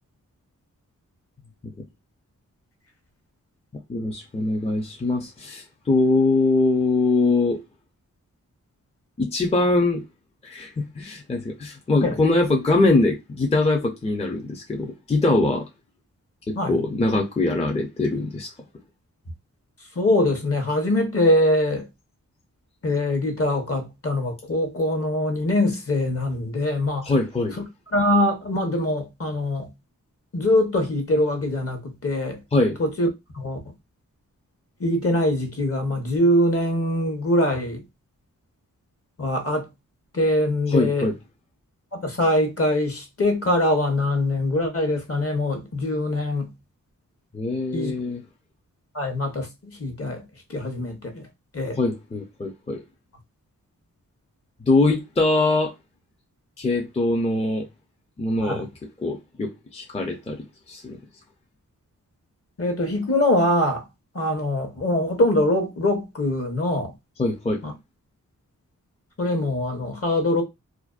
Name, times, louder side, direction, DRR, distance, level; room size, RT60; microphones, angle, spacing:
voice 1, 3.9-7.6 9.2-10.0 10.4-15.7 16.5-18.5 27.0-27.6 32.5-32.8 40.7-41.1 47.3-48.2 51.8-52.8 54.7-55.7 56.6-57.7 58.2-58.7 59.0-60.4 60.7-61.0 67.2-67.6, left 2 dB, 20° left, 0.5 m, -22 dB
voice 2, 19.9-21.9 22.8-27.1 27.5-27.6 27.9-29.7 30.3-32.4 32.8-33.1 33.3-33.6 34.8-37.8 39.2-39.7 40.1-41.1 41.9-46.5 47.7-47.9 48.9-50.2 50.5-51.3 51.5-51.8 58.4-58.7 62.6-63.8 64.1-66.9 67.6-67.7 69.2-70.4, left 1 dB, 45° left, 1.0 m, -23 dB
2.5 x 2.2 x 2.4 m
cardioid pair, 45°, 34 cm